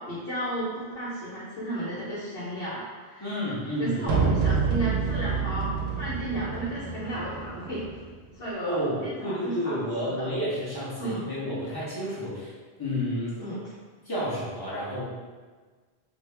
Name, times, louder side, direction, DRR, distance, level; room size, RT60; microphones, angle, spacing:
voice 1, 0.1-3.4 3.8-7.8 8.3-9.8 10.0-10.3 11.0-11.2 13.4-13.7, right 1 dB, 70° left, -11 dB, 1.1 m, -33 dB
voice 2, 3.2-4.3 8.6-12.5 12.8-13.4 14.0-15.0, equal, 25° left, -7 dB, 0.9 m, -30 dB
sound 1, 4.1-8.1, right 5 dB, 90° right, 0.8 m, -28 dB
2.8 x 2.6 x 3.3 m, 1.4 s
omnidirectional pair, 1.0 m